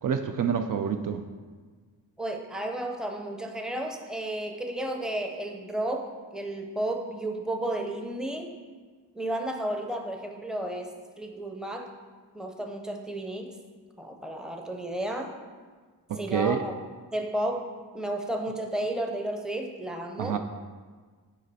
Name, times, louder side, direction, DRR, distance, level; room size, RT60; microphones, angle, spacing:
voice 1, 0.0-1.2 16.1-16.6 20.2-20.4, right 7 dB, 55° right, 7 dB, 0.4 m, -27 dB
voice 2, 2.2-8.5 9.2-11.9 12.3-13.5 14.0-15.3 16.2-16.7 17.1-17.7 17.9-20.4, right 1 dB, ahead, 3 dB, 0.6 m, -32 dB
8.4 x 5.0 x 4.1 m, 1.5 s
wide cardioid pair, 115°, 39 cm